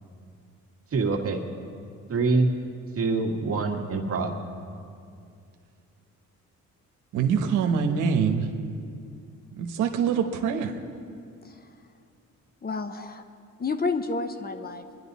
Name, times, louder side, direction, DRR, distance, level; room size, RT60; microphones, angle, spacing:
voice 1, 0.9-1.4 2.1-2.5 3.0-4.3, right 3 dB, 50° right, 1 dB, 1.9 m, -25 dB
voice 2, 7.1-8.5 9.6-10.7, right 6 dB, 90° right, 5 dB, 1.1 m, -24 dB
voice 3, 12.6-13.2 13.6-14.8, left 4 dB, 30° left, 8 dB, 0.9 m, -30 dB
23.0 x 11.0 x 4.1 m, 2.4 s
cardioid pair, 90°, 30 cm